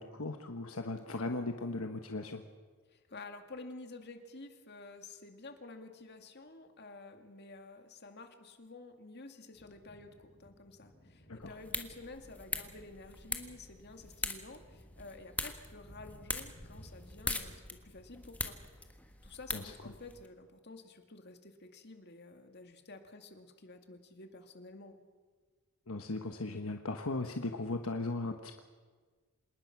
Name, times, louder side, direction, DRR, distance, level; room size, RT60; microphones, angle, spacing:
voice 1, 0.0-2.4 11.3-11.5 15.4-15.5 19.5-19.9 25.9-28.6, left 2 dB, 70° left, 5 dB, 1.2 m, -38 dB
voice 2, 2.9-18.9 19.2-25.0, left 3 dB, 50° left, 6 dB, 2.2 m, -51 dB
sound 1, 9.5-20.0, equal, 35° left, 5.9 m, -59 dB
sound 2, 11.4-20.3, left 2 dB, 5° left, 1.4 m, -42 dB
27.0 x 19.5 x 6.0 m, 1.5 s
head